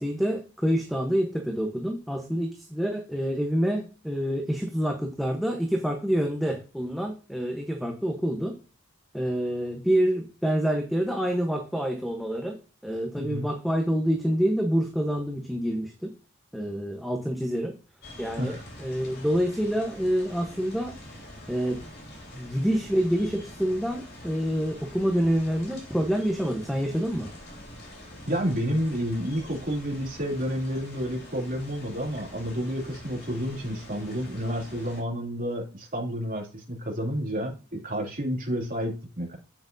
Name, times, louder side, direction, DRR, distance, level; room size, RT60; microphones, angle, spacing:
voice 1, 0.0-8.6 9.1-12.6 12.8-16.1 16.5-17.7 18.2-21.0 21.5-21.8 22.3-27.3, equal, ahead, 2 dB, 0.9 m, -27 dB
sound 1, 18.0-35.0, left 1 dB, 50° left, 3.8 m, -45 dB
voice 2, 28.3-39.4, equal, 40° right, 0 dB, 2.7 m, -30 dB
9.1 x 7.9 x 2.6 m, 0.34 s
head